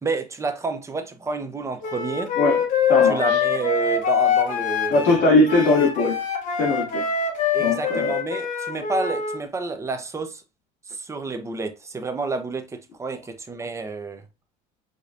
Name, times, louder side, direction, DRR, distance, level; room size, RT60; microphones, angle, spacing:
voice 1, 0.0-2.3 3.0-5.2 7.5-10.4 10.9-14.2, right 3 dB, 15° right, 0.9 m, -29 dB
Wind instrument woodwind instrument, 1.8-9.4, left 6 dB, 50° left, 1.4 m, -24 dB
voice 2, 2.9-3.4 4.9-6.2 6.6-7.1 7.6-8.1, left 2 dB, 75° left, 2.7 m, -20 dB
5.1 x 3.9 x 2.6 m
cardioid pair, 135°, 16 cm